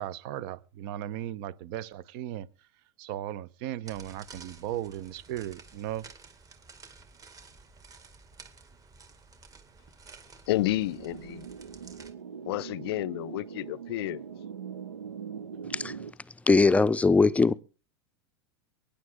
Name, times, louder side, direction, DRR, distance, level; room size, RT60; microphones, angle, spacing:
voice 1, 0.0-2.5 3.0-6.1, right 12 dB, 55° right, 0.9 m, -36 dB
sound 1, 3.9-12.1, right 4 dB, 25° right, 2.2 m, -52 dB
voice 2, 10.5-11.5 12.5-14.2, left 17 dB, 60° left, 0.6 m, -30 dB
sound 2, 10.6-16.1, right 7 dB, 90° right, 0.7 m, -42 dB
voice 3, 16.5-17.5, left 3 dB, 10° left, 0.6 m, -20 dB
23.0 x 10.0 x 3.7 m
hypercardioid pair, 95°, 14 cm